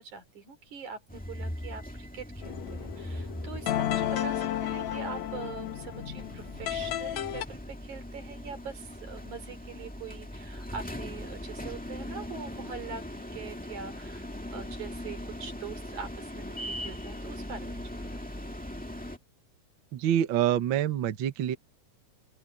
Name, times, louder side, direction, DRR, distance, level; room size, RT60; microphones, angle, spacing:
voice 1, 0.0-13.0 13.3-17.8 18.1-18.4, right 5 dB, 75° right, 5.3 m, -43 dB
sound 1, 1.1-19.2, left 1 dB, 5° left, 1.2 m, -40 dB
sound 2, 2.4-7.4, left 12 dB, 65° left, 2.5 m, -33 dB
voice 2, 19.9-21.6, right 10 dB, 60° right, 1.3 m, -26 dB
open air
omnidirectional pair, 3.5 m